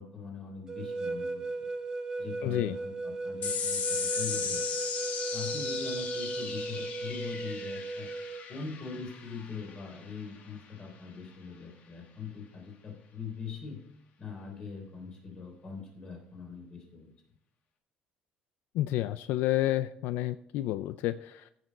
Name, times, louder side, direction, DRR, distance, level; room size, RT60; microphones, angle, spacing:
voice 1, 0.0-1.4 2.2-4.6 5.3-8.1 8.5-13.8 14.2-17.1, left 5 dB, 30° left, 1 dB, 3.5 m, -42 dB
sound 1, 0.7-8.5, right 2 dB, 20° right, 0.8 m, -36 dB
voice 2, 2.4-2.8 18.7-21.5, left 14 dB, 75° left, 13 dB, 0.4 m, -30 dB
sound 2, 3.4-10.2, left 6 dB, 50° left, 1.7 m, -36 dB
14.5 x 6.7 x 4.1 m, 0.78 s
cardioid pair, 155°, 3 cm